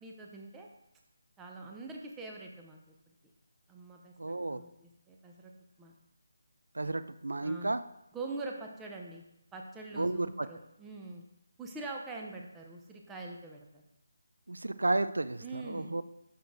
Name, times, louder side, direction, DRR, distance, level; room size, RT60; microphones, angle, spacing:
voice 1, 0.0-0.7 1.4-2.9 3.7-5.5 5.8-6.0 6.8-7.1 7.4-7.8 8.1-9.2 9.5-11.2 11.6-13.8 15.4-15.9, right 3 dB, 10° right, 0 dB, 0.6 m, -44 dB
voice 2, 4.2-4.6 6.7-7.8 10.0-10.5 14.5-16.0, right 2 dB, 90° right, 13 dB, 0.4 m, -32 dB
6.4 x 6.1 x 3.5 m, 0.81 s
figure-of-eight pair, 165°, 0 cm